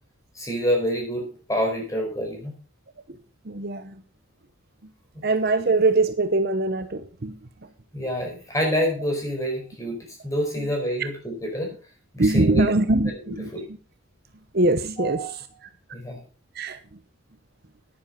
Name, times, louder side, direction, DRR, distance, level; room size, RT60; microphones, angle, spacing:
voice 1, 0.3-2.5 7.9-11.7 12.1-12.7 13.1-13.2 13.5-13.6 15.0-15.3 15.9-16.2, equal, 15° left, 4.7 m, -27 dB
voice 2, 3.5-3.9 5.2-7.4 12.2-13.5 14.5-15.2 16.6-16.8, right 2 dB, 45° right, 0.8 m, -22 dB
10.5 x 9.9 x 5.3 m
head